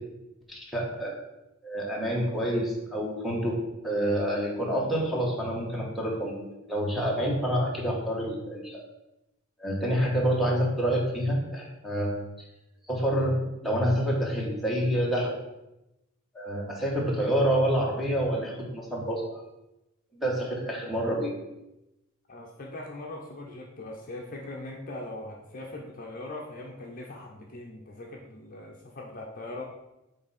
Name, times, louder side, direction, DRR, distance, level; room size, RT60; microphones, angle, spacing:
voice 1, 0.5-1.1 1.6-3.6 3.8-8.8 9.6-12.1 12.9-15.3 16.3-19.4 20.1-21.3, equal, ahead, -4 dB, 1.5 m, -27 dB
voice 2, 22.3-29.6, left 2 dB, 40° left, 0 dB, 0.8 m, -40 dB
8.3 x 3.4 x 4.3 m, 0.93 s
head